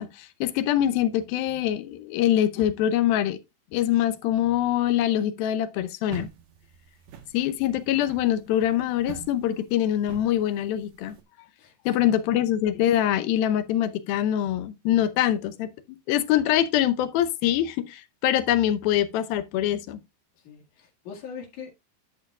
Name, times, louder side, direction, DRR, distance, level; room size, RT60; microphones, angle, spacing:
voice 1, 0.0-3.4 3.7-6.3 7.3-11.2 11.9-15.7 16.1-20.0, left 11 dB, 85° left, 2.6 m, -24 dB
sound 1, 6.1-11.2, right 9 dB, 65° right, 2.2 m, -44 dB
voice 2, 11.6-12.0 20.4-21.7, left 6 dB, 60° left, 3.3 m, -42 dB
10.5 x 7.0 x 2.3 m
omnidirectional pair, 4.1 m